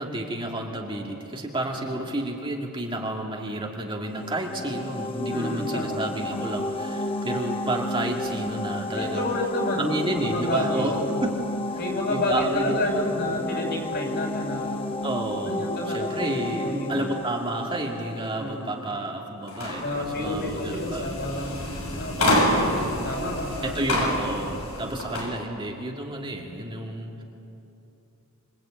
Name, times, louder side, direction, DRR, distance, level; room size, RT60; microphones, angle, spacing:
voice 1, 0.0-9.3 9.8-11.4 12.1-13.2 15.0-21.2 22.2-22.6 23.6-27.2, right 1 dB, 25° right, 0 dB, 2.2 m, -31 dB
voice 2, 1.7-2.2 5.3-6.0 8.6-11.2 11.8-14.9 15.4-17.1 18.3-18.9 19.8-22.8 23.0-24.0 24.8-25.2, left 1 dB, 50° left, 1 dB, 6.4 m, -30 dB
sound 1, 4.0-18.7, left 1 dB, 25° left, 1.0 m, -32 dB
sound 2, 19.5-25.3, left 1 dB, 80° left, 6.3 m, -28 dB
26.0 x 25.0 x 9.0 m, 2.8 s
head